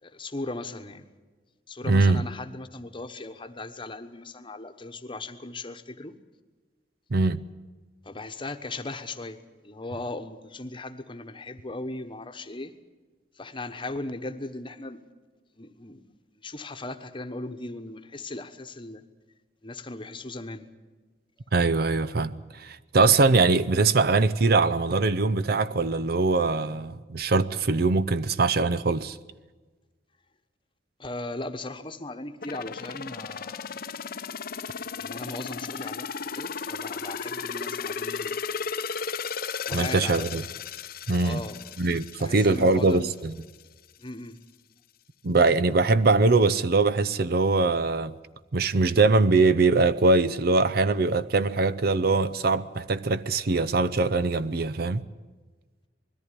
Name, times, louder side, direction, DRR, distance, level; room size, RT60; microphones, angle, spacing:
voice 1, 0.0-1.0 1.7-6.1 8.0-9.4 9.6-12.7 13.4-15.0 15.6-16.1 16.4-19.0 19.6-20.7 31.0-33.7 35.0-38.4 39.7-40.3 41.2-41.6 42.2-43.0 44.0-44.4, left 2 dB, 30° left, 1.2 m, -37 dB
voice 2, 1.9-2.2 7.1-7.5 21.5-29.2 39.7-40.4 41.1-41.4 41.8-43.3 45.2-48.1 48.5-55.0, right 3 dB, 60° right, 0.7 m, -22 dB
sound 1, 32.4-43.2 43.5-43.6, left 6 dB, 55° left, 0.7 m, -35 dB
21.0 x 14.5 x 10.0 m
head